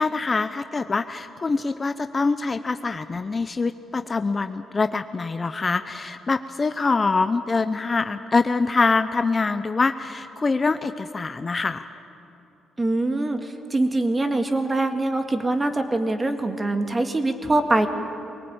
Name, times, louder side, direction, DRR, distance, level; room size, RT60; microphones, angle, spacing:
voice 1, 0.0-11.9, left 4 dB, 30° left, 10 dB, 0.7 m, -24 dB
voice 2, 12.8-13.4 13.7-17.9, right 2 dB, 20° right, 6 dB, 1.9 m, -23 dB
23.0 x 18.5 x 8.9 m, 2.9 s
cardioid pair, 90°, 0 cm